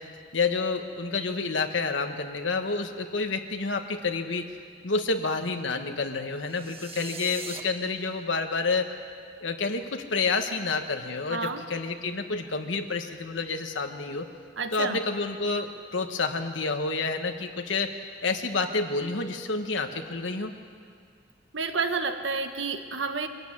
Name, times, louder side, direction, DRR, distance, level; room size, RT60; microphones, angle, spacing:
voice 1, 0.0-4.5 4.8-8.9 9.4-14.3 14.7-17.9 18.2-20.5, left 4 dB, 80° left, 5 dB, 1.3 m, -29 dB
sound 1, 6.4-7.6, right 6 dB, 30° right, 1.2 m, -41 dB
voice 2, 11.3-11.6 14.6-15.0 21.5-23.3, right 4 dB, 75° right, 7 dB, 1.4 m, -30 dB
23.0 x 15.0 x 9.8 m, 2.2 s
head